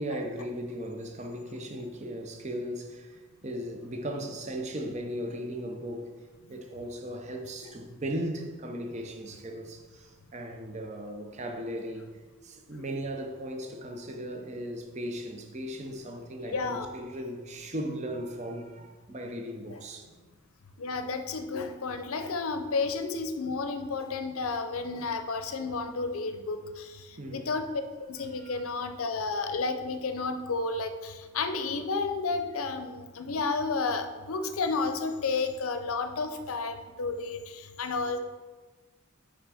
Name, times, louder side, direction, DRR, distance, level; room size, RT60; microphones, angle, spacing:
voice 1, 0.0-6.1 6.5-12.1 12.4-20.1 27.1-27.5 28.4-28.7, equal, 30° right, 0.6 m, -37 dB
voice 2, 16.4-16.9 19.7-19.8 20.8-27.7 28.1-38.2, left 4 dB, 80° left, 0.6 m, -32 dB
5.8 x 5.1 x 4.9 m
head